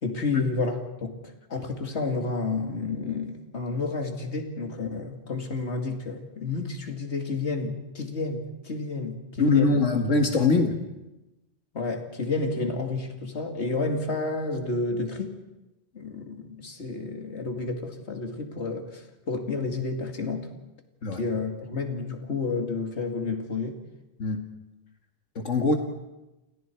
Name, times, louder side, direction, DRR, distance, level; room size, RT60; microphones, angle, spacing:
voice 1, 0.0-9.8 10.3-10.5 11.7-15.3 15.9-20.5 21.2-23.8, left 3 dB, 65° left, 4 dB, 2.7 m, -30 dB
voice 2, 9.4-10.8 21.0-21.2 24.2-24.4 25.4-25.7, left 3 dB, 90° left, 3 dB, 2.3 m, -23 dB
30.0 x 29.0 x 4.6 m, 1.0 s
omnidirectional pair, 1.2 m